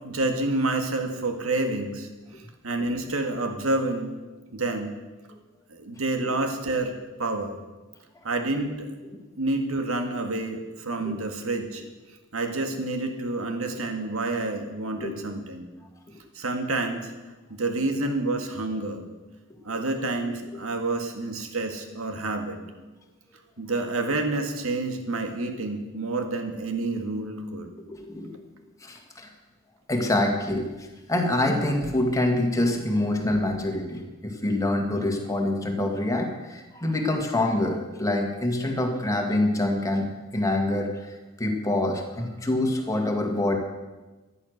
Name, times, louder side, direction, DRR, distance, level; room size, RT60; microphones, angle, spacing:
voice 1, 0.0-2.1 2.6-4.1 4.5-5.0 5.7-7.6 8.2-9.0 9.4-11.8 12.3-15.7 16.3-17.1 17.5-19.0 19.6-22.6 23.6-27.7, right 2 dB, 75° right, 5 dB, 1.9 m, -28 dB
voice 2, 27.9-28.4 28.8-29.3 29.9-43.6, left 1 dB, 15° left, 2 dB, 1.8 m, -26 dB
14.5 x 11.0 x 6.5 m, 1.2 s
head